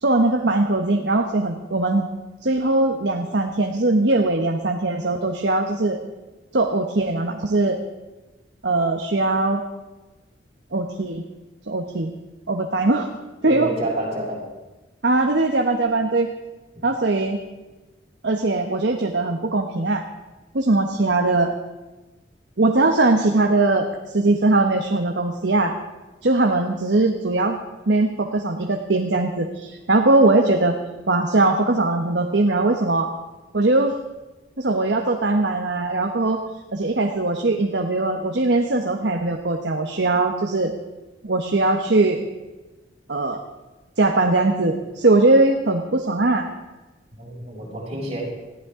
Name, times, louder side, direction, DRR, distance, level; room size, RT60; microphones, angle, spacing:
voice 1, 0.0-2.1 2.4-6.0 6.5-7.8 8.6-9.6 10.7-11.2 11.7-12.1 12.5-13.1 13.4-13.7 15.0-16.3 16.8-17.4 18.2-20.0 20.5-21.5 22.6-25.7 26.2-27.6 27.9-30.8 31.1-33.1 33.5-33.9 34.6-36.4 36.7-40.7 41.2-42.2 43.1-43.4 44.0-46.5, right 2 dB, 70° right, 3 dB, 1.1 m, -20 dB
voice 2, 13.4-14.5 47.2-48.2, right 1 dB, 35° right, -5 dB, 6.3 m, -29 dB
20.5 x 15.0 x 3.7 m, 1.1 s
head